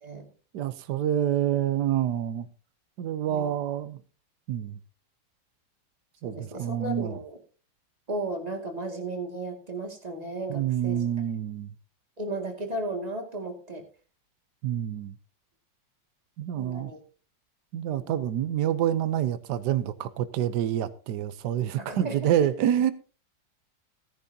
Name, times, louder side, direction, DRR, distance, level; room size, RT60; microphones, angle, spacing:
voice 1, 0.5-2.5 3.0-4.0 4.5-4.8 6.2-7.1 10.5-11.7 14.6-15.1 16.4-16.9 17.7-22.9, right 11 dB, 70° right, 1.3 m, -27 dB
voice 2, 6.2-7.4 8.1-11.0 12.2-13.8 16.6-17.0 17.9-18.2 21.8-22.5, right 2 dB, 20° right, 2.3 m, -35 dB
17.5 x 10.5 x 2.8 m
omnidirectional pair, 2.0 m